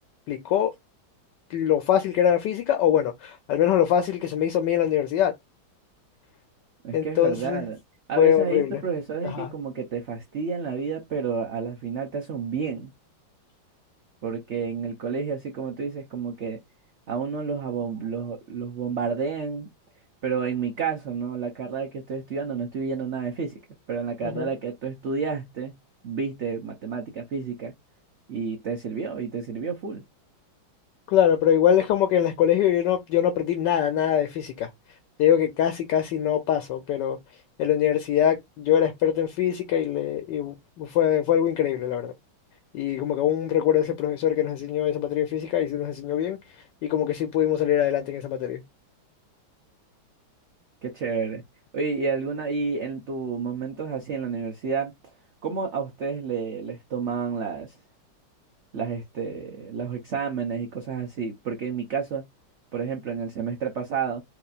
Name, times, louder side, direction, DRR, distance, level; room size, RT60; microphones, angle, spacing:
voice 1, 0.3-0.7 1.5-5.3 6.9-7.7 8.2-8.8 9.2-9.5 24.2-24.5 31.1-34.7 35.2-37.2 37.6-42.1 42.7-46.4 46.8-48.6, left 10 dB, 70° left, 1.2 m, -23 dB
voice 2, 6.8-7.8 8.1-12.9 14.2-16.6 17.1-19.7 20.2-23.6 23.9-25.7 26.0-27.7 28.3-30.0 50.8-51.4 51.7-54.9 55.4-57.8 58.7-62.3 62.7-64.2, right 5 dB, 90° right, 0.6 m, -30 dB
4.7 x 2.9 x 2.4 m
omnidirectional pair, 2.2 m